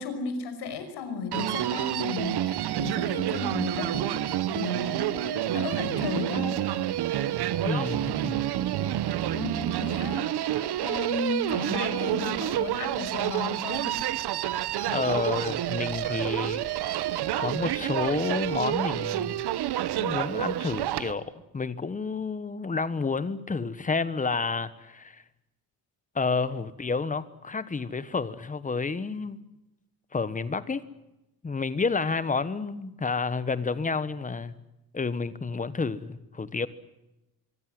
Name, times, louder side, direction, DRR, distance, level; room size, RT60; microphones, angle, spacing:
voice 1, 0.0-6.6 9.3-13.9, left 4 dB, 90° left, 5.7 m, -34 dB
Human voice, 1.3-21.1, right 12 dB, 85° right, 1.4 m, -29 dB
voice 2, 7.6-8.5 14.9-17.1 17.4-19.4 19.9-25.2 26.1-29.4 30.1-30.9 31.4-34.6 34.9-36.7, left 4 dB, 20° left, 1.2 m, -30 dB
25.0 x 23.5 x 7.8 m
cardioid pair, 155°, 39 cm